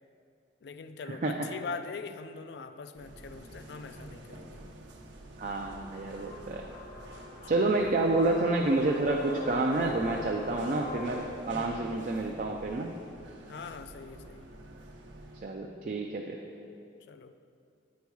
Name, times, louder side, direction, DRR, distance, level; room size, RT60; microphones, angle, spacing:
voice 1, 0.6-4.6 7.4-8.1 13.5-14.5 17.1-17.3, left 5 dB, 60° left, 11 dB, 0.3 m, -42 dB
sound 1, 2.9-15.6, right 1 dB, 80° right, 0.8 m, -47 dB
voice 2, 5.4-6.7 7.5-12.9 15.4-16.4, right 2 dB, 40° right, 1 dB, 0.4 m, -29 dB
sound 2, 5.9-11.2, left 1 dB, 80° left, 1.4 m, -43 dB
8.3 x 4.5 x 4.7 m, 2.4 s
head